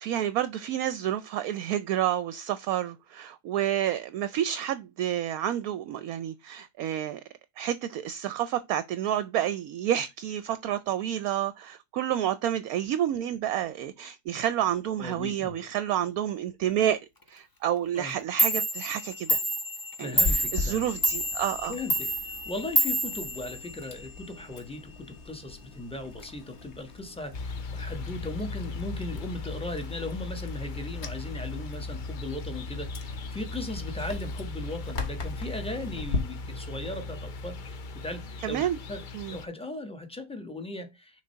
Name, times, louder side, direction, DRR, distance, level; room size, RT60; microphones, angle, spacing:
voice 1, 0.0-7.2 7.6-17.0 17.3-19.4 20.0-21.8 38.4-38.8 39.1-39.4, right 11 dB, 70° right, 1.0 m, -29 dB
voice 2, 15.0-15.6 17.9-18.1 20.0-20.8 21.7-39.0 39.3-41.2, left 2 dB, 5° left, 1.1 m, -38 dB
Clock, 18.1-18.2 18.4-24.0, right 1 dB, 20° left, 0.6 m, -28 dB
Chewing mastication, 20.1-36.2, left 3 dB, 45° left, 1.2 m, -40 dB
sound 1, 27.3-39.5, left 3 dB, 80° left, 0.4 m, -37 dB
6.4 x 3.7 x 5.6 m
omnidirectional pair, 1.7 m